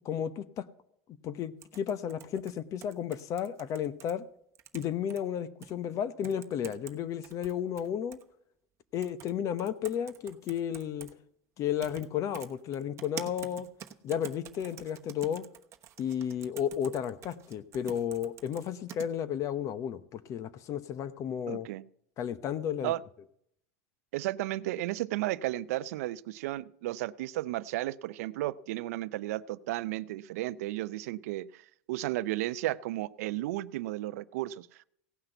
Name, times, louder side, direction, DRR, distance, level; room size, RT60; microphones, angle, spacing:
voice 1, 0.0-0.7 1.2-4.2 4.7-8.2 8.9-11.1 11.6-13.7 14.0-15.5 16.0-21.7 22.2-22.9, left 9 dB, 40° left, 15 dB, 0.9 m, -33 dB
sound 1, 1.6-4.1 4.5-5.2 5.6-5.7 6.2-6.9 7.2-8.2 9.0-9.3 9.6-11.1 11.8-12.1 12.3-19.1, right 10 dB, 35° right, 1.0 m, -47 dB
voice 2, 21.5-21.8 22.8-23.0 24.1-31.6 31.9-34.8, right 16 dB, 85° right, 18 dB, 0.5 m, -34 dB
17.0 x 5.9 x 7.9 m, 0.71 s
supercardioid pair, 125°, 8 cm